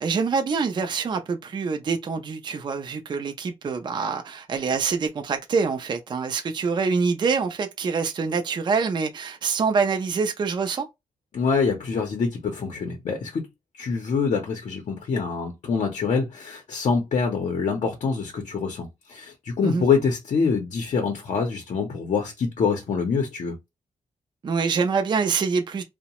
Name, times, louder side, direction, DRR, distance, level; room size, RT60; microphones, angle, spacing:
voice 1, 0.0-10.9 19.6-19.9 24.4-25.8, right 5 dB, 35° right, 0.4 m, -25 dB
voice 2, 11.3-13.4 13.7-23.6, left 5 dB, 60° left, 0.6 m, -25 dB
2.7 x 2.0 x 2.9 m
wide cardioid pair, 130°, 13 cm